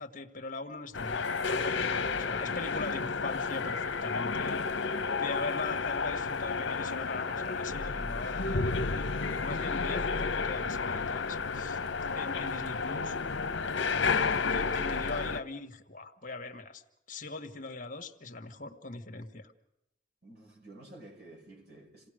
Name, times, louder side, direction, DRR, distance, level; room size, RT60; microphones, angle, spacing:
voice 1, 0.0-11.8 12.1-13.2 14.5-16.8 17.1-19.5, left 3 dB, 45° left, 1.6 m, -41 dB
sound 1, 0.9-15.4, left 4 dB, 70° left, 0.9 m, -31 dB
voice 2, 13.9-14.3 20.2-22.1, right 2 dB, 55° right, 6.2 m, -52 dB
28.0 x 18.5 x 5.0 m
head